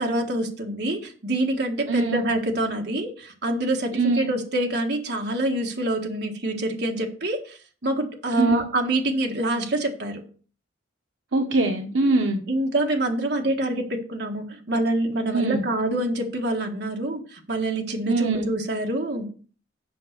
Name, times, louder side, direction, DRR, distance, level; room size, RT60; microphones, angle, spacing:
voice 1, 0.0-10.2 12.5-19.3, right 1 dB, 55° right, 2 dB, 1.7 m, -26 dB
voice 2, 1.9-2.2 3.9-4.3 8.4-8.6 11.3-12.4 15.3-15.6 18.0-18.5, right 3 dB, 75° right, 2 dB, 1.0 m, -23 dB
7.6 x 5.6 x 6.6 m, 0.41 s
head